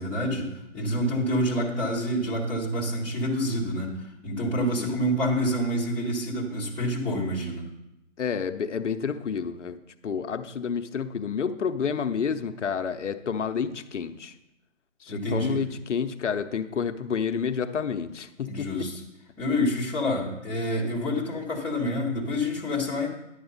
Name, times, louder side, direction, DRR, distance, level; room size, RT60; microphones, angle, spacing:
voice 1, 0.0-7.6 15.1-15.6 18.4-19.0 19.4-23.1, equal, 5° left, -8 dB, 0.9 m, -27 dB
voice 2, 8.2-9.8 10.0-14.4 15.0-18.9, left 6 dB, 70° left, 8 dB, 0.8 m, -29 dB
11.0 x 8.0 x 4.0 m, 0.91 s
hypercardioid pair, 160°, 38 cm